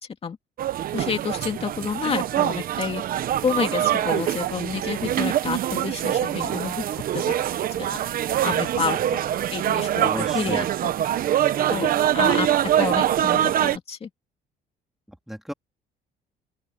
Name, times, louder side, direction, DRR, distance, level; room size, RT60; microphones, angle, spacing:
sound 1, 0.6-13.8, right 11 dB, 60° right, 1.1 m, -24 dB
voice 1, 0.9-3.0 3.4-6.8 7.1-7.3 7.8-8.0 8.4-9.2 9.5-10.7 11.7-12.5 12.8-14.1, left 6 dB, 35° left, 2.3 m, -29 dB
voice 2, 10.0-10.7 15.1-15.5, equal, ahead, 3.5 m, -34 dB
open air
cardioid pair, 110°, 17 cm